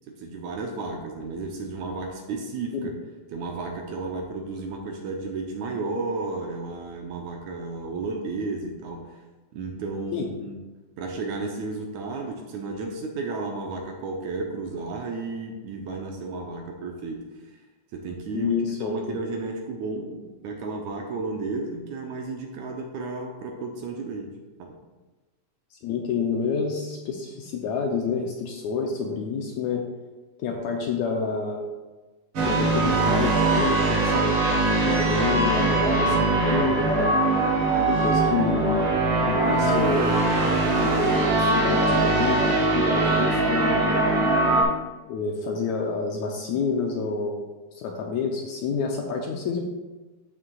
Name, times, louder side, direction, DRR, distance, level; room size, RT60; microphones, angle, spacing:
voice 1, 0.1-2.9 3.3-9.2 9.5-10.6 11.0-17.2 17.9-18.5 18.8-24.3 24.6-24.7, right 3 dB, 70° right, 1 dB, 1.9 m, -33 dB
voice 2, 18.3-19.2 25.7-29.8 30.4-31.6 32.4-34.4 34.9-37.2 37.9-38.8 39.3-40.1 40.8-44.1 45.1-47.4 47.7-49.6, left 5 dB, 75° left, 1 dB, 1.8 m, -28 dB
sound 1, 32.4-44.6, right 2 dB, 50° right, 1.8 m, -22 dB
13.0 x 6.2 x 2.4 m, 1.2 s
omnidirectional pair, 3.8 m